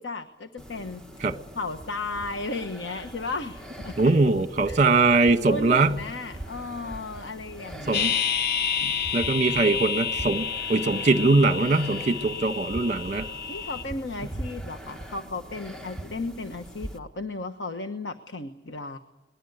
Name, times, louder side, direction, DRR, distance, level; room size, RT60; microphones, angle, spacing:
voice 1, 0.0-4.0 4.7-4.8 5.5-8.2 13.5-19.0, left 3 dB, 85° left, 8 dB, 1.2 m, -35 dB
sound 1, 0.6-17.0, right 1 dB, 5° left, 1.3 m, -42 dB
voice 2, 4.0-5.9 7.9-8.1 8.8-13.3, right 3 dB, 40° right, 10 dB, 1.4 m, -22 dB
sound 2, 7.9-13.8, left 7 dB, 60° left, 0.9 m, -29 dB
24.0 x 20.5 x 8.1 m, 1.0 s
head